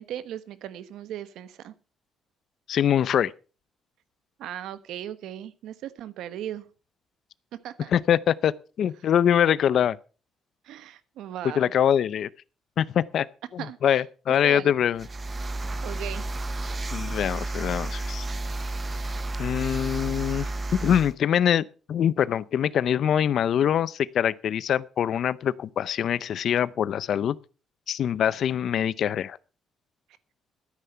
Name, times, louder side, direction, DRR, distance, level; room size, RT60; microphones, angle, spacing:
voice 1, 0.0-1.7 4.4-6.7 7.6-7.9 10.6-11.7 13.6-14.0 14.4-14.7 15.8-16.3, right 11 dB, 85° right, 1.1 m, -37 dB
voice 2, 2.7-3.3 7.9-8.5 8.8-10.0 11.5-12.3 12.8-13.3 13.5-15.0 16.9-18.2 19.4-20.5 20.8-27.4 27.9-29.4, left 9 dB, 55° left, 0.6 m, -24 dB
sound 1, 15.0-21.1, right 2 dB, 25° right, 0.7 m, -31 dB
13.0 x 9.6 x 5.6 m
cardioid pair, 150°, 0 cm